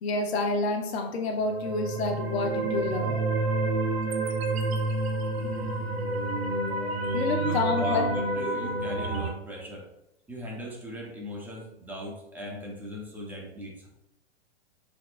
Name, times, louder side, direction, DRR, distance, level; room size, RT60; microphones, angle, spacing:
voice 1, 0.0-3.2 7.1-8.1, left 3 dB, 70° left, 6 dB, 0.8 m, -28 dB
sound 1, 1.4-9.3, right 2 dB, 70° right, 0.8 m, -29 dB
voice 2, 5.3-6.0 7.4-9.9 10.3-13.9, equal, 5° right, -3 dB, 0.8 m, -37 dB
4.1 x 2.9 x 2.4 m, 0.86 s
hypercardioid pair, 130°, 33 cm